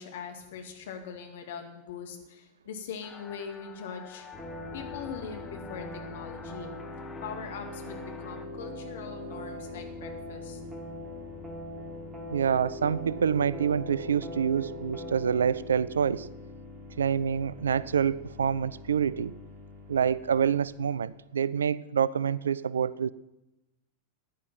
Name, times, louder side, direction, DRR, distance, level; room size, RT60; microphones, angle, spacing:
voice 1, 0.0-4.3 4.7-6.7 7.2-10.6, left 6 dB, 55° left, 4 dB, 2.2 m, -41 dB
sound 1, 3.0-8.5, left 6 dB, 15° left, 1.4 m, -48 dB
sound 2, 4.3-21.1, left 1 dB, 15° right, 3.3 m, -42 dB
voice 2, 12.3-16.3 17.0-19.3 19.9-23.1, right 7 dB, 70° right, 20 dB, 0.4 m, -27 dB
15.0 x 10.0 x 5.9 m, 0.95 s
figure-of-eight pair, 90°, 0 cm